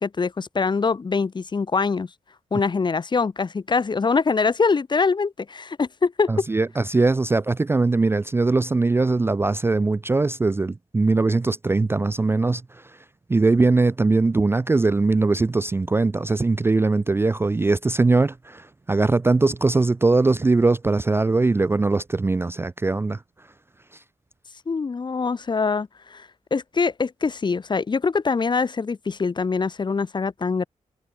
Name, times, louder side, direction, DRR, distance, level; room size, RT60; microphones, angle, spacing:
voice 1, 0.0-2.1 2.5-6.5 24.7-30.7, left 4 dB, 35° left, 0.7 m, -24 dB
voice 2, 6.3-12.6 13.3-23.2, right 3 dB, 20° right, 0.3 m, -21 dB
cardioid pair, 65°, 13 cm